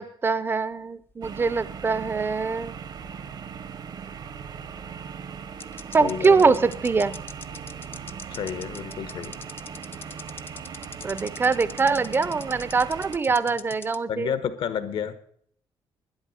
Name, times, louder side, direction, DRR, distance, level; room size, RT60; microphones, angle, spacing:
voice 1, 0.0-2.8 5.9-7.2 11.0-14.3, right 4 dB, 25° right, 16 dB, 0.6 m, -23 dB
sound 1, 1.1-2.7 2.9-3.0 4.8-4.9 5.6-14.0, left 4 dB, 25° left, 0.6 m, -41 dB
sound 2, 1.2-13.2, right 7 dB, 50° right, 1.0 m, -39 dB
voice 2, 6.0-6.5 8.3-9.3 13.5-13.6 14.1-15.1, left 8 dB, 70° left, 11 dB, 1.4 m, -30 dB
12.0 x 10.5 x 6.5 m, 0.63 s
cardioid pair, 155°, 9 cm